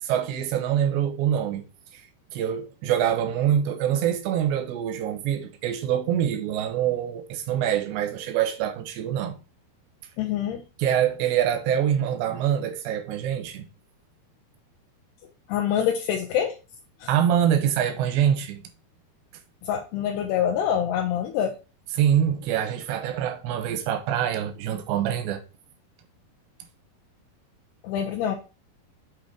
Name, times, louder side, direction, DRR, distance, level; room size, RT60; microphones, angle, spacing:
voice 1, 0.0-1.6 1.9-2.0 2.3-9.3 10.8-13.7 17.1-18.6 21.9-25.4, right 9 dB, 85° right, 3.2 m, -25 dB
voice 2, 10.2-10.6 15.5-16.5 17.0-17.1 19.6-21.5 27.8-28.3, left 9 dB, 80° left, 2.6 m, -25 dB
7.9 x 3.0 x 5.2 m
omnidirectional pair, 4.9 m